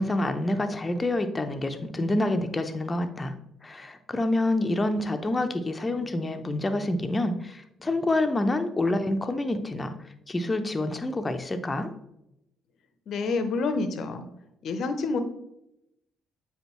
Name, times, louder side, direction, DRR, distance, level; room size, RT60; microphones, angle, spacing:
voice 1, 0.0-3.3 3.6-9.9 10.3-11.9, left 2 dB, 25° left, 8 dB, 0.8 m, -27 dB
voice 2, 13.1-14.3 14.6-15.2, left 3 dB, 55° left, 9 dB, 0.8 m, -28 dB
7.9 x 5.0 x 3.1 m, 0.83 s
hypercardioid pair, 50°, 0 cm